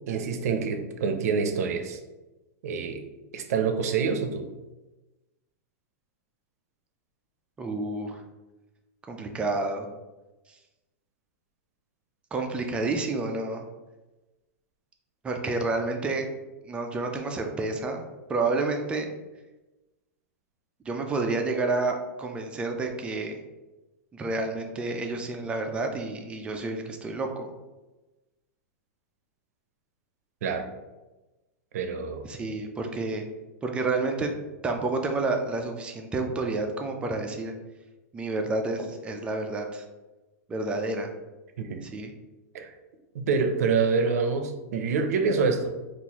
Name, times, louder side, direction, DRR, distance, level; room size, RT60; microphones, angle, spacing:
voice 1, 0.1-2.0 2.6-3.0 3.3-4.4 30.4-30.6 31.7-32.2 41.6-41.8 42.5-42.7 43.1-45.7, right 5 dB, 80° right, 7 dB, 0.5 m, -26 dB
voice 2, 7.6-8.2 9.1-9.9 12.3-13.6 15.2-16.3 16.6-18.0 18.3-19.1 20.9-23.3 24.1-27.5 32.2-33.3 33.6-34.3 34.6-37.5 38.1-39.8 40.5-41.1 41.8-42.1, right 3 dB, 15° right, 4 dB, 0.4 m, -29 dB
3.7 x 2.4 x 2.9 m, 1.1 s
supercardioid pair, 145°, 8 cm